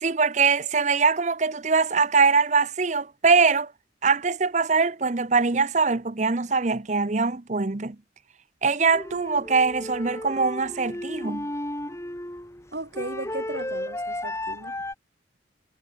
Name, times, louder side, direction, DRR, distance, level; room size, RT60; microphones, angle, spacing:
voice 1, 0.0-3.7 4.0-8.0 8.6-11.5, right 4 dB, 40° right, 0.8 m, -22 dB
sound 1, 8.9-14.9, left 1 dB, 15° left, 2.3 m, -34 dB
voice 2, 12.7-14.8, right 2 dB, 65° right, 2.6 m, -36 dB
head